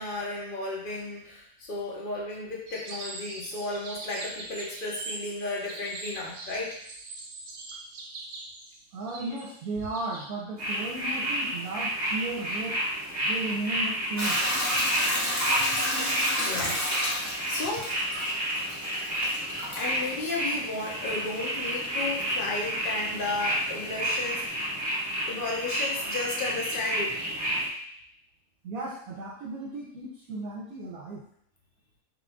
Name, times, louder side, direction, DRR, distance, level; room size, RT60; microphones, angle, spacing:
voice 1, 0.0-6.8 16.4-17.9 19.7-24.7 25.3-27.2, left 2 dB, 45° left, -3 dB, 0.8 m, -33 dB
sound 1, 2.7-10.3, right 3 dB, 85° right, 0.5 m, -42 dB
voice 2, 8.9-12.8 13.2-14.4 25.9-26.1 28.6-31.2, right 2 dB, 70° right, -4 dB, 1.1 m, -35 dB
sound 2, 10.6-27.7, equal, 20° right, 0.9 m, -31 dB
Hiss / Toilet flush / Trickle dribble, 14.2-24.5, equal, 20° left, 0.4 m, -32 dB
4.0 x 2.5 x 3.4 m, 0.68 s
omnidirectional pair, 1.6 m